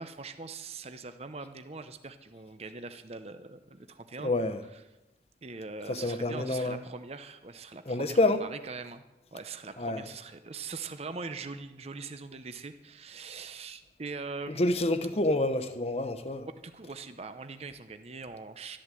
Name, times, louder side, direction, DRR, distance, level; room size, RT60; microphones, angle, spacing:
voice 1, 0.0-4.3 4.7-4.8 5.4-9.0 9.3-14.8 16.6-18.8, right 4 dB, 35° right, 0.7 m, -42 dB
voice 2, 4.2-4.6 5.9-6.8 7.9-8.4 9.8-10.0 14.6-16.5, left 2 dB, 35° left, 1.0 m, -28 dB
12.5 x 11.5 x 7.6 m
head